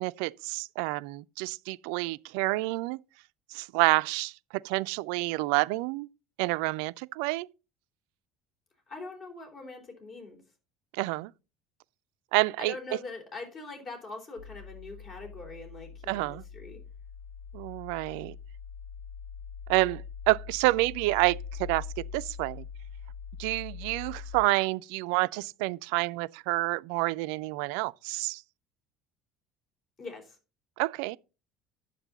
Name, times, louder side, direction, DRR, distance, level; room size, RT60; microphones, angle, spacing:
voice 1, 0.0-3.0 3.5-4.3 4.6-6.1 6.4-7.5 10.9-11.3 12.3-12.8 16.1-16.4 17.5-18.4 19.7-21.8 22.1-22.6 23.4-28.4 30.8-31.2, right 22 dB, 65° right, 0.4 m, -28 dB
voice 2, 8.9-10.4 12.6-16.8 30.0-30.4, left 3 dB, 45° left, 3.8 m, -42 dB
sound 1, 14.4-24.4, left 6 dB, 90° left, 0.6 m, -43 dB
9.9 x 7.3 x 4.0 m
figure-of-eight pair, 65°, 0 cm